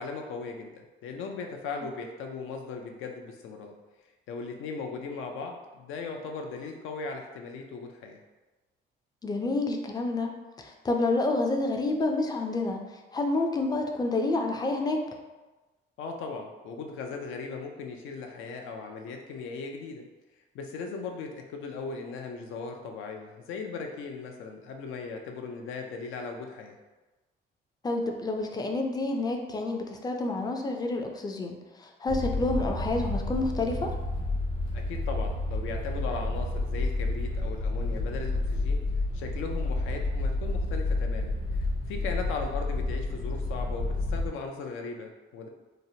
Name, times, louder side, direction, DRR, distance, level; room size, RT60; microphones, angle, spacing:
voice 1, 0.0-3.7 4.3-8.2 16.0-20.0 20.5-26.8 34.7-38.8 39.1-45.5, left 4 dB, 85° left, 3 dB, 0.4 m, -38 dB
voice 2, 9.2-12.8 13.1-15.0 27.8-33.9, left 2 dB, 20° left, 3 dB, 0.4 m, -29 dB
sound 1, 32.1-44.3, left 2 dB, 50° left, 1.1 m, -30 dB
2.8 x 2.0 x 2.7 m, 1.2 s
cardioid pair, 90°, 20 cm